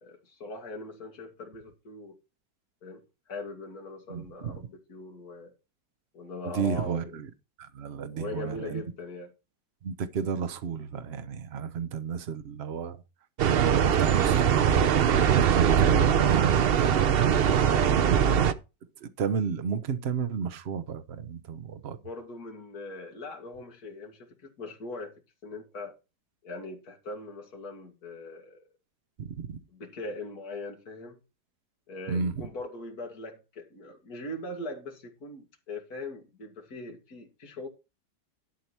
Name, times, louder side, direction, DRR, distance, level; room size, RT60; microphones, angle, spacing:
voice 1, 0.0-2.2 2.8-3.0 3.3-5.5 6.1-7.1 7.9-9.3 17.6-18.0 21.9-25.1 25.4-26.0 26.4-28.7 29.7-31.2 31.9-37.7, left 2 dB, 60° left, 2.5 m, -40 dB
voice 2, 4.1-4.6 6.4-7.3 7.6-8.8 9.8-13.0 13.5-14.9 15.4-17.1 18.0-18.2 19.0-22.0 29.2-29.6 32.1-32.3, right 6 dB, 45° right, 0.9 m, -33 dB
sound 1, 13.4-18.5, right 8 dB, 70° right, 0.5 m, -21 dB
11.5 x 4.8 x 5.9 m
omnidirectional pair, 1.8 m